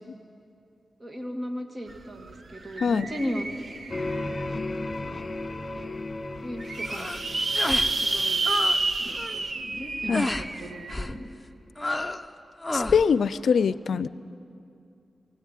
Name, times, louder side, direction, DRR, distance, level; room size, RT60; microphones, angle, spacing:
voice 1, 1.0-3.5 4.8-5.3 6.4-6.6 6.9-7.2 8.0-8.5 9.0-11.3, equal, 35° right, 3 dB, 2.6 m, -36 dB
sound 1, 1.9-2.0 2.3-4.4 5.0-5.1 5.4-5.5 5.7-5.8 6.4-10.9, right 2 dB, 50° right, 1.3 m, -29 dB
voice 2, 2.8-3.1 10.1-10.3 12.7-14.1, left 6 dB, 80° left, 16 dB, 0.5 m, -23 dB
sound 2, 3.9-9.5, left 2 dB, 40° left, 1.5 m, -35 dB
sound 3, 6.8-7.2 7.5-7.9 8.2-8.8 9.1-9.4 10.1-10.5 10.9-11.2 11.8-12.3 12.6-13.0, left 1 dB, 15° left, 0.9 m, -30 dB
21.5 x 17.0 x 9.3 m, 2.5 s
cardioid pair, 70°, 0 cm